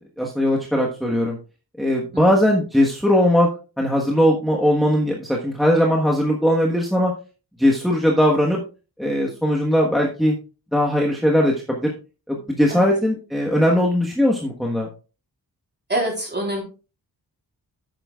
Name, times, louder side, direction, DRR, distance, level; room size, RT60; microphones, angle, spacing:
voice 1, 0.2-1.4 1.8-3.5 3.8-7.1 7.6-8.6 9.0-10.3 10.7-11.9 12.3-14.9, equal, ahead, -1 dB, 1.3 m, -19 dB
voice 2, 15.9-16.6, right 1 dB, 25° right, 0 dB, 3.9 m, -24 dB
11.0 x 8.8 x 2.4 m, 0.34 s
wide cardioid pair, 130°, 38 cm